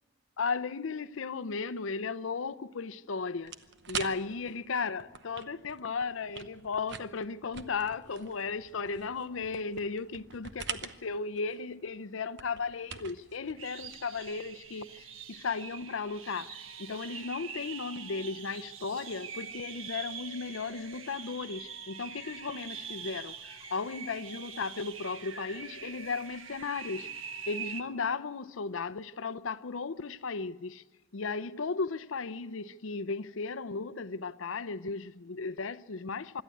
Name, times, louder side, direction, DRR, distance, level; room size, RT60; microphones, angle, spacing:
voice 1, 0.4-3.6 3.9-27.1 27.5-30.8 31.1-36.4, left 4 dB, 80° left, 0.7 m, -35 dB
sound 1, 3.4-14.6, right 7 dB, 60° right, 1.0 m, -45 dB
sound 2, 13.6-27.8, right 6 dB, 85° right, 1.3 m, -44 dB
25.5 x 12.5 x 8.5 m
head